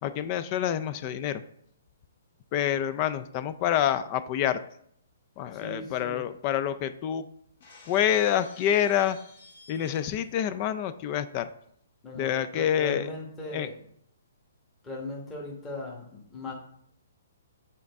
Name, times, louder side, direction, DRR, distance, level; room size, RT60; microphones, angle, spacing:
voice 1, 0.0-1.4 2.5-4.6 5.4-7.2 7.9-9.2 9.7-11.5 12.2-13.1 13.5-13.7, left 10 dB, 30° left, 13 dB, 0.4 m, -27 dB
voice 2, 5.5-6.2 12.0-13.8 14.8-16.5, left 2 dB, 15° left, -3 dB, 1.3 m, -38 dB
Shatter, 7.6-10.4, left 3 dB, 60° left, 1.7 m, -52 dB
7.6 x 4.1 x 3.5 m, 0.67 s
hypercardioid pair, 155°, 0 cm